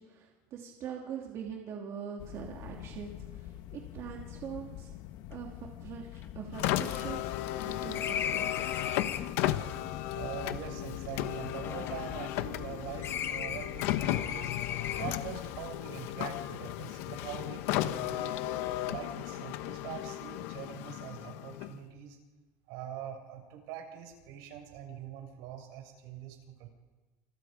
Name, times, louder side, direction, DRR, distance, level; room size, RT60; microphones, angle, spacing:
voice 1, 0.0-4.9 5.3-8.7, right 7 dB, 40° right, 0 dB, 3.1 m, -43 dB
sound 1, 2.2-15.7, left 13 dB, 55° left, 1.4 m, -46 dB
sound 2, 5.3-5.4 5.6-5.7 6.1-9.4 10.3-12.7 13.0-15.3, left 8 dB, 30° left, 1.3 m, -38 dB
Car, 6.5-21.9, left 14 dB, 75° left, 1.4 m, -35 dB
voice 2, 10.1-14.5 15.0-18.3 18.9-22.2 22.7-26.7, right 9 dB, 65° right, 4 dB, 6.6 m, -43 dB
29.5 x 28.0 x 5.2 m, 1.3 s
cardioid pair, 165°, 8 cm